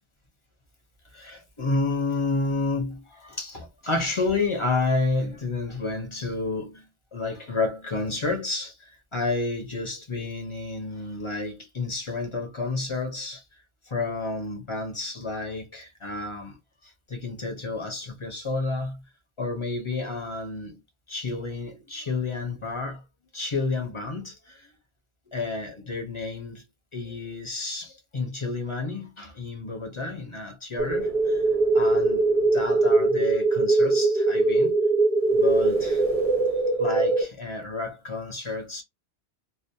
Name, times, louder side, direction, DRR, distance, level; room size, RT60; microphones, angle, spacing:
voice 1, 1.1-13.4 13.8-16.6 16.8-19.0 19.4-20.8 21.1-23.0 23.3-24.7 25.3-26.6 26.9-31.4 31.7-34.7 35.3-36.0 36.8-38.8, left 3 dB, 35° left, 0.6 m, -30 dB
sound 1, 30.8-37.2, right 3 dB, 40° right, 0.8 m, -22 dB
2.4 x 2.0 x 2.6 m
omnidirectional pair, 1.1 m